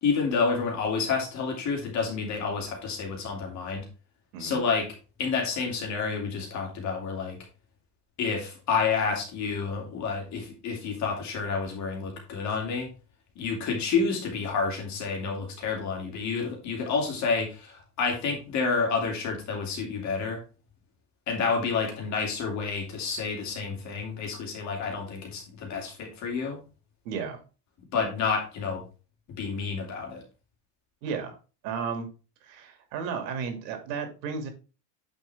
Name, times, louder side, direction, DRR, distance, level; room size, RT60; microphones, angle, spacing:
voice 1, 0.0-3.9 4.4-4.9 5.2-7.4 8.2-12.9 13.4-20.4 21.3-26.6 27.9-28.8 29.4-30.2, left 5 dB, 35° left, 1 dB, 2.9 m, -29 dB
voice 2, 27.0-27.4 31.0-31.4 31.6-32.1 32.4-34.5, right 6 dB, 90° right, 7 dB, 2.6 m, -33 dB
9.5 x 5.3 x 3.5 m, 0.33 s
cardioid pair, 175°, 49 cm